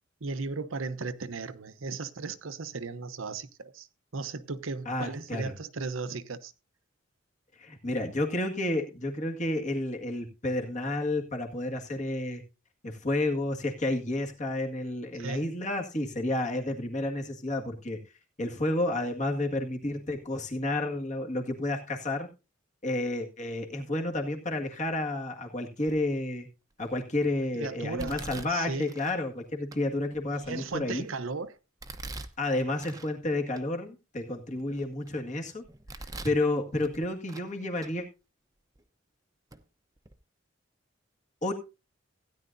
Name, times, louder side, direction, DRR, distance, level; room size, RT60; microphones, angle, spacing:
voice 1, 0.2-3.9 4.1-6.5 15.1-15.5 27.5-28.9 30.3-31.6, right 4 dB, 85° right, 0.9 m, -36 dB
voice 2, 4.9-5.5 7.6-12.4 12.8-18.0 18.4-22.3 22.8-26.5 26.8-31.1 32.4-35.6 36.2-38.1 41.4-41.5, left 2 dB, 40° left, 1.9 m, -31 dB
Domestic sounds home sounds, 25.9-26.3 26.8-27.3 28.0-29.2 29.7-29.8 30.4-31.2 31.8-33.1 33.5-33.6 34.2-35.2 35.6-36.4 36.8-37.5 37.8-37.9 38.8-38.9 39.5-39.6 40.0-40.1, right 2 dB, 20° right, 0.8 m, -44 dB
16.0 x 10.0 x 2.7 m
head